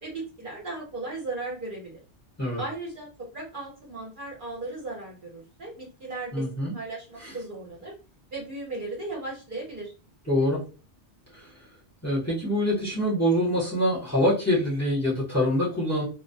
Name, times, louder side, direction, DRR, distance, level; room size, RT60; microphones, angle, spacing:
voice 1, 0.0-2.0 2.6-7.9 8.3-9.9, right 2 dB, 50° right, -3 dB, 0.9 m, -36 dB
voice 2, 6.3-6.7 7.2-7.4 10.3-10.6 11.3-11.5 12.0-16.0, left 1 dB, 15° left, -6 dB, 0.8 m, -25 dB
2.2 x 2.1 x 2.6 m, 0.34 s
omnidirectional pair, 1.2 m